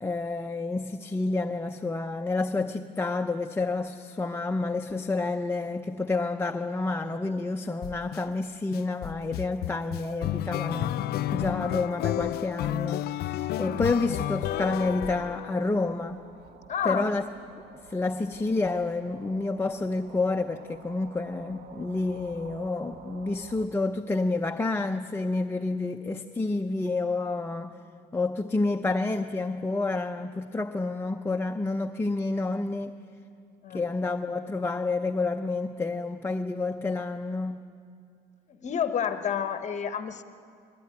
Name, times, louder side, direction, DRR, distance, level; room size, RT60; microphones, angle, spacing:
voice 1, 0.0-11.0 11.3-16.2 16.8-17.2 17.9-27.8 28.1-32.9 33.7-37.6, left 3 dB, 15° left, 4 dB, 0.7 m, -29 dB
sound 1, 7.8-8.2 8.7-15.9, left 13 dB, 70° left, 0.5 m, -31 dB
sound 2, 13.4-23.7, right 5 dB, 70° right, 1.5 m, -50 dB
voice 2, 16.7-17.2 33.6-33.8 38.6-40.2, left 8 dB, 45° left, 9 dB, 1.0 m, -29 dB
21.5 x 16.5 x 9.8 m, 2.4 s
cardioid pair, 110°, 17 cm